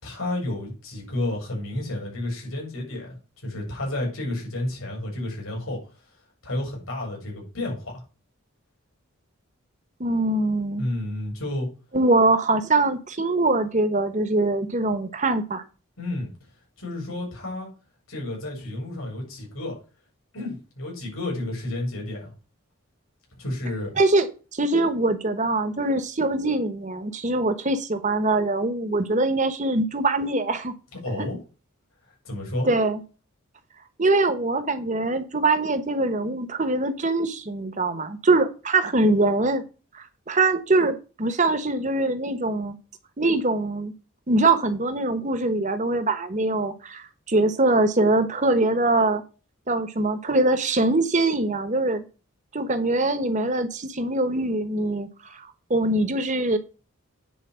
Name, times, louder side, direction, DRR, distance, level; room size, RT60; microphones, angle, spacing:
voice 1, 0.0-3.2 3.4-5.8 6.4-8.0 10.8-11.7 16.0-16.3 16.8-17.7 18.1-19.8 20.3-22.3 23.4-23.9 31.0-31.4 32.2-32.7, left 1 dB, 80° left, -1 dB, 6.1 m, -31 dB
voice 2, 10.0-10.9 11.9-15.6 24.0-30.7 31.1-31.2 32.6-33.0 34.0-39.6 39.9-42.8 43.2-43.9 44.3-49.2 49.7-52.0 52.5-56.6, right 2 dB, 35° right, 11 dB, 1.1 m, -23 dB
9.5 x 4.6 x 7.5 m, 0.33 s
head